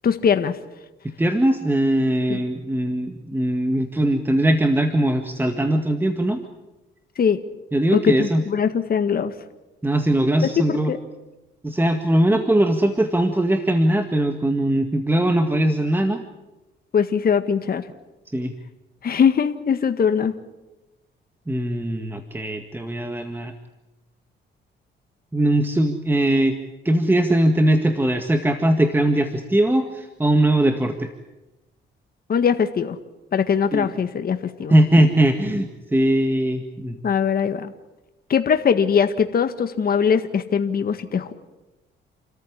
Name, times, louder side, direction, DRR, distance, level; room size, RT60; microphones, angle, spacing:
voice 1, 0.0-0.5 2.3-2.4 7.2-7.4 7.9-9.3 10.6-11.0 16.9-17.8 19.0-20.3 32.3-33.0 33.3-34.7 37.0-37.7 38.3-41.3, left 7 dB, 50° left, 8 dB, 1.7 m, -21 dB
voice 2, 1.0-6.4 7.7-8.4 9.8-10.9 11.6-16.2 18.3-18.5 21.5-23.5 25.3-26.6 26.9-31.1 33.7-33.9 34.7-37.0, right 1 dB, 10° right, 6 dB, 1.9 m, -20 dB
29.5 x 14.0 x 9.9 m, 1.0 s
cardioid pair, 90°, 20 cm